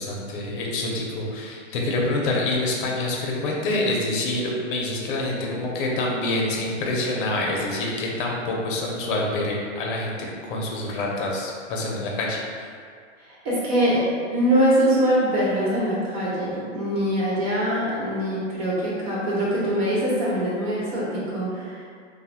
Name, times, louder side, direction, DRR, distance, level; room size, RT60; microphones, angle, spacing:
voice 1, 0.0-12.4, left 2 dB, 40° left, -2 dB, 0.6 m, -26 dB
voice 2, 13.2-14.1 14.3-21.9, equal, 50° right, -7 dB, 1.1 m, -23 dB
3.0 x 2.1 x 2.5 m, 2.1 s
hypercardioid pair, 120°, 39 cm